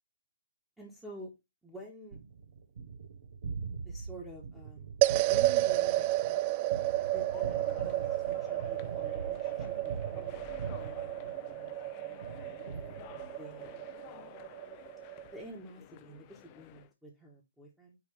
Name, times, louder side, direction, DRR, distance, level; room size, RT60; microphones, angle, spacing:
voice 1, 0.8-1.3 1.6-2.2 3.8-6.4 7.1-7.6 7.8-11.1 11.4-12.7 13.3-14.4 15.3-18.0, right 1 dB, 5° right, 1.6 m, -50 dB
Gunshot gunfire, 2.1-11.8 12.2-13.6, right 5 dB, 60° right, 1.5 m, -43 dB
sound 1, 5.0-15.4, right 16 dB, 30° right, 0.3 m, -32 dB
sound 2, 6.8-16.9, left 14 dB, 30° left, 0.6 m, -52 dB
9.6 x 3.3 x 3.3 m
figure-of-eight pair, 130°, 0 cm